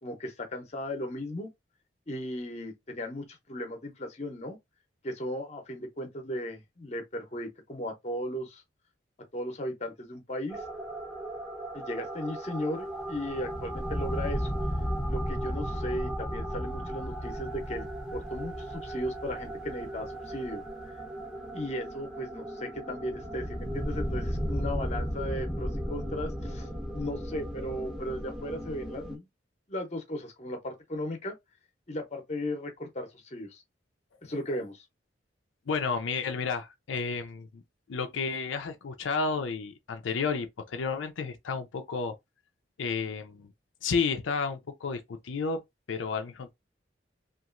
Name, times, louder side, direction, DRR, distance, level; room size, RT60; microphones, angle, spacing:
voice 1, 0.0-1.5 2.1-4.6 5.0-8.6 9.3-10.7 11.7-14.5 15.1-17.9 18.1-20.9 21.5-29.2 29.7-31.3 31.9-33.6 34.2-34.8, left 1 dB, 35° left, 0.7 m, -36 dB
sound 1, 10.5-29.2, equal, 5° right, 0.6 m, -35 dB
voice 2, 35.7-37.6 37.9-42.2 42.8-43.5 43.8-45.6 45.9-46.5, left 5 dB, 90° left, 0.5 m, -31 dB
2.9 x 2.5 x 2.4 m
head